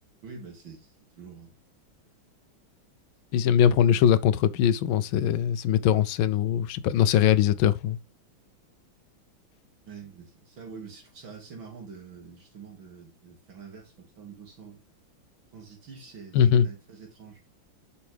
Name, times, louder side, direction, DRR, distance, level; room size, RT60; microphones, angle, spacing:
voice 1, 0.2-1.5 9.8-14.8 15.5-17.4, right 5 dB, 70° right, 2.9 m, -46 dB
voice 2, 3.3-8.0 16.3-16.7, left 9 dB, 80° left, 1.3 m, -21 dB
7.2 x 5.3 x 3.3 m
omnidirectional pair, 2.3 m